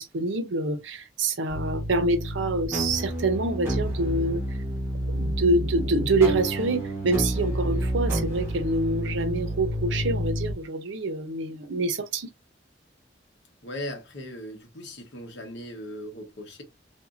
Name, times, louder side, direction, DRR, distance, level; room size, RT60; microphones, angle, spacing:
voice 1, 0.0-4.6 5.1-12.3, right 2 dB, 85° right, 0.7 m, -26 dB
sound 1, 1.5-10.5, equal, 15° right, 1.1 m, -29 dB
voice 2, 13.6-16.6, left 1 dB, 70° left, 1.1 m, -38 dB
3.4 x 2.6 x 2.5 m
head